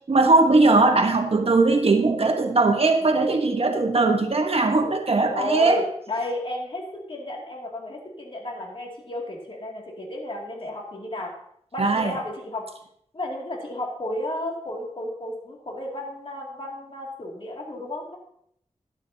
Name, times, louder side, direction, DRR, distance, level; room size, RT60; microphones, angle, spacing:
voice 1, 0.1-5.9 11.8-12.2, right 3 dB, 55° right, 4 dB, 1.2 m, -19 dB
voice 2, 5.3-11.3 11.7-12.7 13.1-18.2, left 1 dB, 45° left, -2 dB, 2.5 m, -32 dB
12.5 x 11.5 x 2.8 m, 0.70 s
wide cardioid pair, 80°, 12 cm